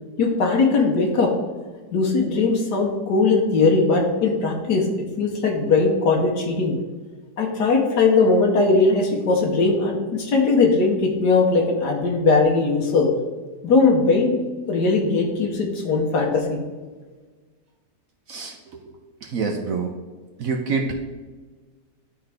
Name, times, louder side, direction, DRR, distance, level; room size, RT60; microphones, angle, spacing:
voice 1, 0.2-1.3 1.9-4.9 5.2-6.8 7.4-13.1 13.6-14.4 14.7-16.6, left 3 dB, 80° left, 0 dB, 1.5 m, -19 dB
voice 2, 18.3-19.9 20.4-20.9, right 4 dB, 65° right, 3 dB, 1.0 m, -27 dB
11.5 x 3.8 x 3.4 m, 1.4 s
omnidirectional pair, 1.8 m